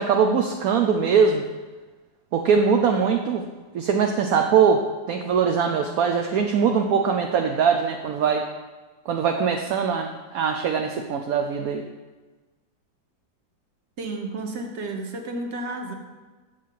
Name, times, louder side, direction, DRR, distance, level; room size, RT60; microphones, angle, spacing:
voice 1, 0.0-1.4 2.3-3.4 3.7-8.5 9.1-11.9, right 6 dB, 65° right, 4 dB, 0.9 m, -22 dB
voice 2, 14.0-15.9, right 2 dB, 40° right, 3 dB, 1.2 m, -32 dB
7.3 x 6.4 x 7.6 m, 1.3 s
omnidirectional pair, 2.0 m